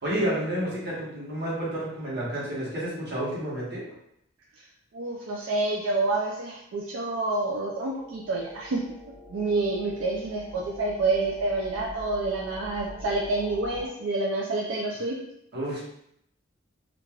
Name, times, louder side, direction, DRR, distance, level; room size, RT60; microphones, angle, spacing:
voice 1, 0.0-3.8 15.5-15.8, right 1 dB, 55° right, -7 dB, 1.1 m, -30 dB
voice 2, 4.9-8.8 9.3-15.2, right 2 dB, 75° right, -2 dB, 0.4 m, -28 dB
sound 1, 7.2-13.9, left 1 dB, 15° right, 1.3 m, -45 dB
3.2 x 2.4 x 2.3 m, 0.76 s
head